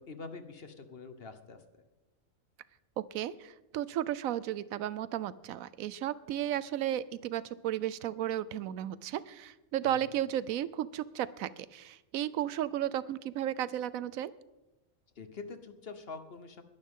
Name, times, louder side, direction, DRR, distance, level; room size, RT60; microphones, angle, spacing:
voice 1, 0.0-1.6 9.9-10.1 15.2-16.6, left 4 dB, 50° left, 9 dB, 1.2 m, -45 dB
voice 2, 3.1-14.3, right 11 dB, 90° right, 17 dB, 1.0 m, -34 dB
21.0 x 11.0 x 3.7 m, 1.0 s
omnidirectional pair, 1.4 m